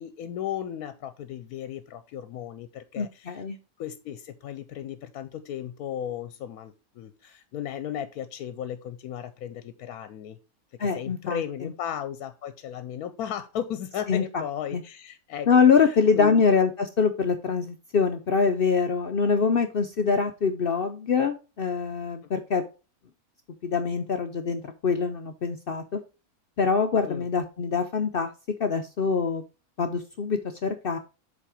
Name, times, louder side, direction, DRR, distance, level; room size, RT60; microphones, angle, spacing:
voice 1, 0.0-3.4 3.8-10.4 10.8-15.5 15.8-16.4 27.1-27.2, left 10 dB, 80° left, 1.1 m, -35 dB
voice 2, 3.0-3.6 10.8-11.7 14.1-14.4 14.7-14.8 15.5-22.6 23.6-26.0 26.6-28.3 28.6-29.4 29.8-31.0, left 5 dB, 65° left, 0.5 m, -24 dB
7.5 x 4.1 x 4.9 m
omnidirectional pair, 1.6 m